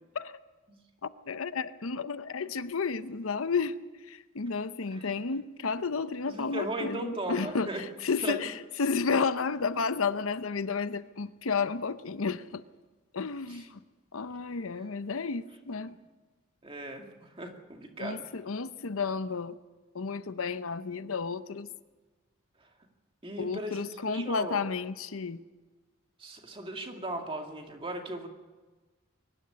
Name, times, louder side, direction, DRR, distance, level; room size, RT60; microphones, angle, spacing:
voice 1, 1.0-3.7 4.1-12.6 13.1-13.7 14.1-15.9 18.0-19.6 19.9-21.7 23.4-25.4, left 5 dB, 80° left, 13 dB, 0.8 m, -32 dB
voice 2, 6.3-7.8 8.2-8.4 13.5-13.6 14.7-14.8 16.6-18.3 23.2-24.7 26.2-28.3, right 1 dB, 25° right, 3 dB, 2.4 m, -37 dB
23.0 x 11.5 x 9.8 m, 1.3 s
head